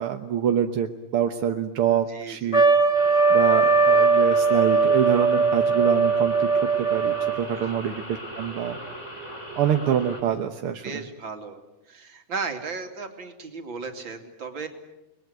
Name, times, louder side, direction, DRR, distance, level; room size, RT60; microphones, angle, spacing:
voice 1, 0.0-2.6 3.3-8.8 9.5-11.0, right 9 dB, 60° right, 5 dB, 1.6 m, -26 dB
voice 2, 2.1-2.6 7.6-7.7 10.8-11.6 11.9-14.7, right 4 dB, 40° right, 6 dB, 3.2 m, -35 dB
Trumpet, 2.5-7.5, right 4 dB, 60° left, 0.3 m, -20 dB
sound 1, 2.9-10.2, equal, 20° left, 6.5 m, -39 dB
30.0 x 21.5 x 9.3 m, 0.94 s
omnidirectional pair, 3.5 m